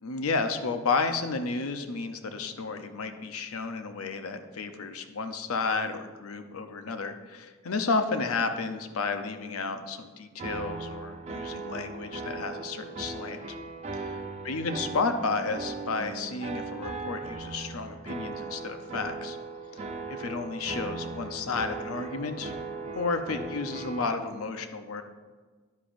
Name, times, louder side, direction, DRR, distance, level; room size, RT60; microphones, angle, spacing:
voice 1, 0.0-13.6 13.9-14.2 14.4-19.4 19.7-22.5 22.9-25.0, left 4 dB, 85° left, 8 dB, 0.7 m, -32 dB
sound 1, 10.4-24.1, right 3 dB, 30° right, 0.7 m, -38 dB
10.5 x 9.9 x 2.6 m, 1.4 s
head